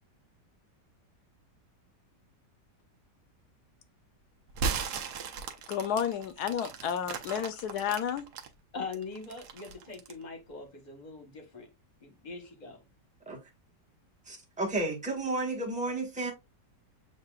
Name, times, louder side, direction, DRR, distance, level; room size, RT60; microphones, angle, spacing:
sound 1, 4.5-8.5 8.9-10.2, right 5 dB, 75° right, 1.3 m, -36 dB
voice 1, 5.7-8.3, left 9 dB, 75° left, 1.1 m, -31 dB
voice 2, 8.7-11.7 12.0-12.8, left 4 dB, 30° left, 0.9 m, -42 dB
voice 3, 14.3-16.3, right 2 dB, 5° right, 0.9 m, -32 dB
7.4 x 2.6 x 2.2 m
omnidirectional pair, 1.8 m